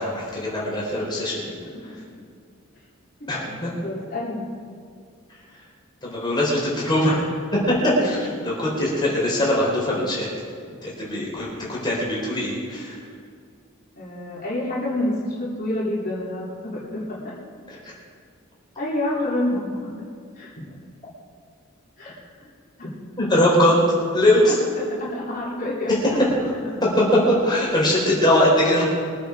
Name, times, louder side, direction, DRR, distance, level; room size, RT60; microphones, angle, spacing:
voice 1, 0.0-1.5 3.3-3.7 6.0-7.3 7.5-10.3 10.8-13.0 17.7-17.9 23.2-24.5 26.8-28.9, left 1 dB, 20° left, -5 dB, 4.1 m, -21 dB
voice 2, 3.6-4.5 8.0-8.3 14.0-17.3 18.8-19.9 20.3-20.7 22.0-22.2 22.8-22.9 24.8-25.9, left 1 dB, 40° left, -8 dB, 3.5 m, -28 dB
23.0 x 8.4 x 4.9 m, 2.2 s
head